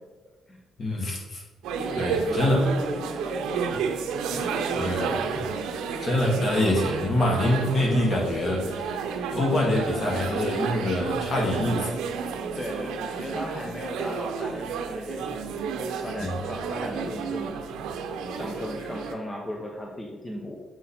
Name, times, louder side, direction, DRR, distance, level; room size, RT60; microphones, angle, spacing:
voice 1, 0.8-1.4 2.0-2.6 4.8-5.1 6.0-9.0 9.3-11.9 16.2-16.4, left 1 dB, 50° left, -1 dB, 1.9 m, -25 dB
sound 1, 1.6-19.1, right 5 dB, 90° right, 0.6 m, -31 dB
voice 2, 1.8-4.0 4.3-5.4 9.4-9.6 12.6-15.4 16.0-17.7 18.3-20.6, left 1 dB, 20° left, -1 dB, 0.8 m, -37 dB
7.3 x 4.0 x 4.3 m, 1.2 s
cardioid pair, 90°, 0 cm